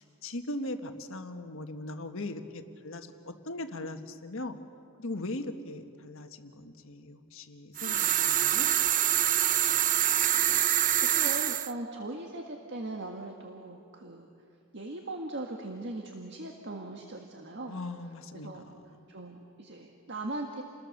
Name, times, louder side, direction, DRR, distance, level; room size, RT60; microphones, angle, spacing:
voice 1, 0.0-4.6 5.0-8.7 17.7-19.0, left 2 dB, 65° left, 7 dB, 1.5 m, -39 dB
sound 1, 7.8-11.7, right 11 dB, 35° right, 0.5 m, -25 dB
voice 2, 10.3-14.3 14.7-17.8 18.4-18.6 19.1-20.6, right 2 dB, 50° right, 2 dB, 1.6 m, -39 dB
29.0 x 20.5 x 6.6 m, 2.7 s
head